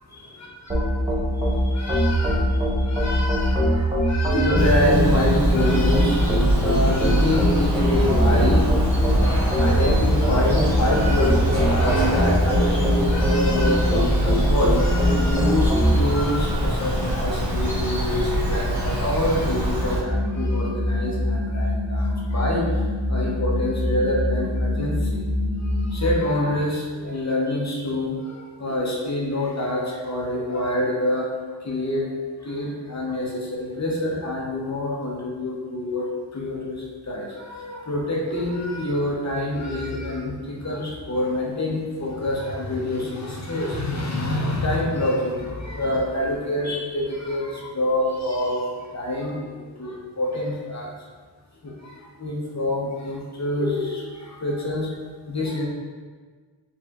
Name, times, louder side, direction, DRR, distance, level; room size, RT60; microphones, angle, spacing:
sound 1, 0.7-15.9, equal, 10° right, 0.8 m, -21 dB
voice 1, 1.4-25.2 25.6-50.9 51.6-55.0 55.3-55.7, left 1 dB, 35° left, -4 dB, 0.8 m, -26 dB
Bird vocalization bird call bird song, 4.6-20.0, equal, 5° left, 1.3 m, -24 dB
sound 2, 20.0-26.1, left 1 dB, 65° left, 1.1 m, -25 dB
4.2 x 3.4 x 2.4 m, 1.5 s
wide cardioid pair, 95°, 47 cm